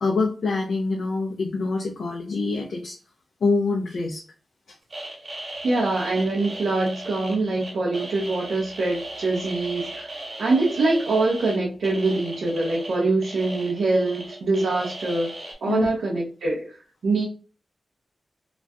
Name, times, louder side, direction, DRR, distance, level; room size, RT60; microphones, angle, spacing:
voice 1, 0.0-3.0 3.4-4.2 15.7-15.9, left 3 dB, 85° left, 0.7 m, -25 dB
sound 1, 4.9-15.5, right 1 dB, 55° right, 1.4 m, -37 dB
voice 2, 5.6-10.1 10.4-16.8 17.0-17.2, right 2 dB, 90° right, 0.8 m, -24 dB
3.0 x 2.3 x 2.5 m
cardioid pair, 70°, 0 cm